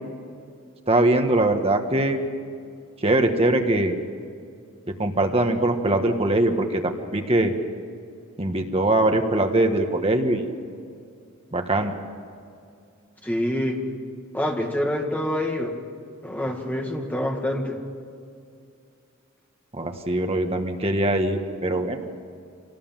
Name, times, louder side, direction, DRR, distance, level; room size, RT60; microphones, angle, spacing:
voice 1, 0.9-2.2 3.0-3.9 5.0-7.5 8.4-10.4 11.5-11.9 19.8-22.0, right 1 dB, 30° right, 4 dB, 1.5 m, -22 dB
voice 2, 13.2-13.8 14.3-15.8 16.2-17.8, left 1 dB, 10° left, 1 dB, 2.1 m, -26 dB
26.0 x 18.5 x 7.5 m, 2.4 s
head